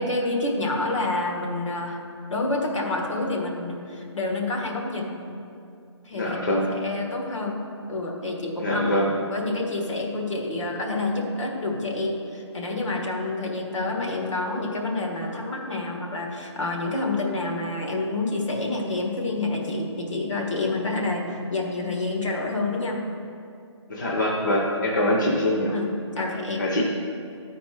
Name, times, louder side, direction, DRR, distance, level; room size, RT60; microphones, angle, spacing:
voice 1, 0.0-2.0 2.3-5.1 6.0-6.4 6.7-7.6 7.9-8.9 9.2-23.0 25.7-26.6, left 2 dB, 85° left, 0 dB, 1.5 m, -28 dB
voice 2, 6.1-6.7 8.6-9.1 23.9-25.7 26.2-26.3 26.6-26.8, left 1 dB, 40° left, -2 dB, 0.7 m, -24 dB
10.5 x 4.3 x 4.7 m, 2.5 s
hypercardioid pair, 180°, 15 cm